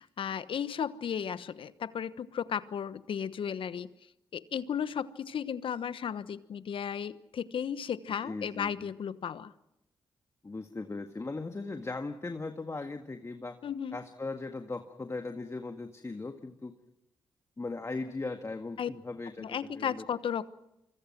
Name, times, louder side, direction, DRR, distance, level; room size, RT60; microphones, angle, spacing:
voice 1, 0.0-3.9 4.3-9.5 13.6-14.0 18.8-18.9 19.4-20.5, left 8 dB, 65° left, 1.1 m, -34 dB
voice 2, 8.2-8.9 10.4-13.6 13.9-16.8 17.6-20.0, left 3 dB, 30° left, 1.8 m, -38 dB
26.0 x 24.5 x 6.1 m
supercardioid pair, 50°, 10 cm